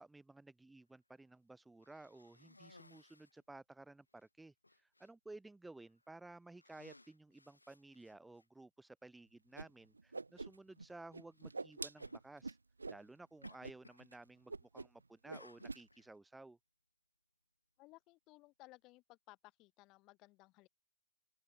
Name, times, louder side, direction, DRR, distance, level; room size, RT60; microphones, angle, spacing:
voice 1, 0.0-12.6 12.9-16.6, right 2 dB, 5° right, 1.3 m, -56 dB
Cough, 1.8-3.4 4.1-4.3 4.6-5.1 5.9-6.1 6.5-8.5 9.4-9.5 11.3-11.6 12.0-12.2 13.4-14.1 14.4-14.8 15.3-16.1, left 2 dB, 85° left, 7.9 m, -62 dB
Whoosh swoosh swish, 9.6-9.7 9.9-10.9 11.1-13.0 13.4-13.7 14.0-14.2 14.5-15.0 15.3-15.8, right 3 dB, 75° right, 0.3 m, -45 dB
voice 2, 17.8-20.7, left 21 dB, 30° left, 4.3 m, -61 dB
open air
figure-of-eight pair, 115°, 0 cm